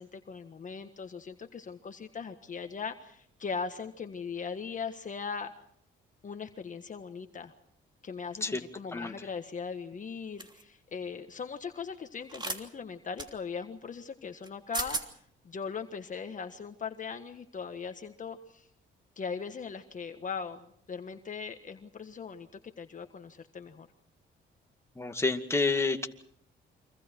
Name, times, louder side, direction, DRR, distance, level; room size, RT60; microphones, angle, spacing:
voice 1, 0.0-5.5 6.2-7.5 8.0-15.0 15.4-18.7 19.2-20.6 20.9-22.5 22.8-23.9, left 5 dB, 40° left, 7 dB, 1.5 m, -39 dB
sound 1, 10.4-10.6 12.3-12.6 13.2-13.3 14.4-14.5 14.7-15.1, right 3 dB, 20° right, 3.1 m, -34 dB
voice 2, 25.0-26.1, left 3 dB, 15° left, 5 dB, 2.2 m, -29 dB
29.5 x 25.0 x 4.6 m, 0.68 s
cardioid pair, 90°, 20 cm